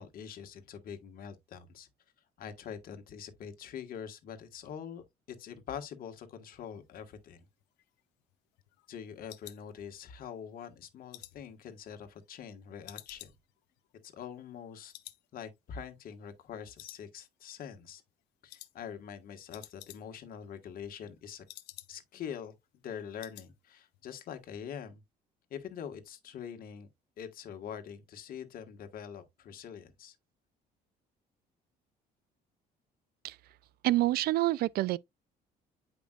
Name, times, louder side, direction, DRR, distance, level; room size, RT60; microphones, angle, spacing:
voice 1, 0.0-1.9 2.4-7.5 8.9-13.3 14.0-14.9 15.3-18.0 18.4-21.4 21.9-22.5 22.8-25.0 25.5-26.9 27.2-30.1, left 8 dB, 60° left, 1.5 m, -44 dB
sound 1, 7.6-10.3 10.7-12.5 12.8-14.7 14.9-15.3 15.5-15.6 16.1-16.5 16.8-17.5 17.8-18.1 18.5-18.7 19.0-19.1 19.3-20.3 20.6-22.2 22.5-22.6 22.9-23.5 23.8-24.1 24.4-24.5, left 17 dB, 90° left, 0.7 m, -52 dB
voice 2, 33.8-35.0, right 16 dB, 65° right, 0.4 m, -27 dB
8.6 x 5.2 x 2.4 m
cardioid pair, 110°, 17 cm